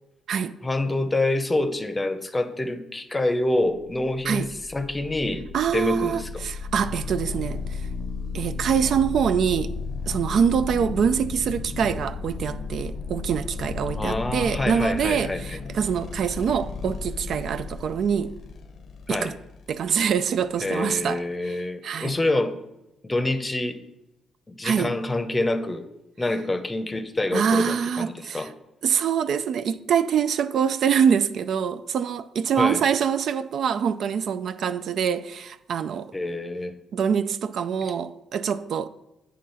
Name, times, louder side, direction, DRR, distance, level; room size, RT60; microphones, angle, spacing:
voice 1, 0.6-5.4 5.7-6.4 13.9-15.4 19.1-19.3 20.6-22.6 23.0-23.8 24.5-25.9 26.2-28.5 32.6-32.8 36.1-36.7, left 2 dB, 20° left, 0.7 m, -26 dB
sound 1, 3.7-21.1, left 4 dB, 60° left, 0.6 m, -34 dB
voice 2, 5.5-7.8 8.3-9.7 10.1-18.3 19.1-19.3 19.7-21.2 21.8-22.2 24.6-24.9 27.3-28.5 28.8-36.1 36.9-38.9, right 7 dB, 65° right, 0.3 m, -24 dB
8.5 x 3.7 x 5.5 m
cardioid pair, 90°, 0 cm